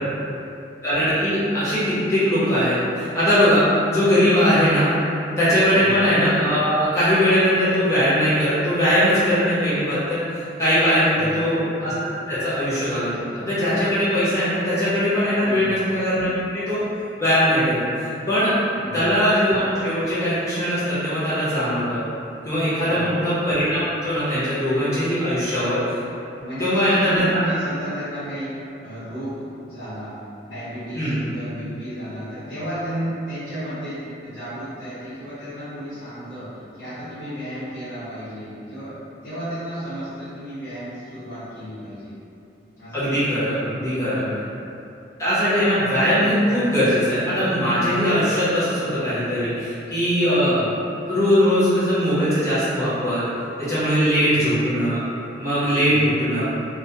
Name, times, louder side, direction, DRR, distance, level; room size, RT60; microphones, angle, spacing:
voice 1, 0.8-4.9 5.4-16.8 17.2-18.5 18.9-22.0 22.4-25.8 26.6-27.4 30.9-31.2 42.9-44.2 45.2-50.6 51.1-53.2 53.6-55.0 55.4-56.4, equal, 15° left, -14 dB, 0.7 m, -20 dB
voice 2, 5.7-6.0 11.1-11.5 15.4-15.8 18.8-19.1 22.8-23.2 26.4-28.6 28.8-30.2 30.4-39.0 39.2-42.2 42.8-43.0 43.6-43.8 44.2-44.5 50.4-50.7 54.2-54.6 55.8-56.1, equal, 55° left, -16 dB, 0.9 m, -33 dB
2.2 x 2.1 x 2.7 m, 2.7 s
head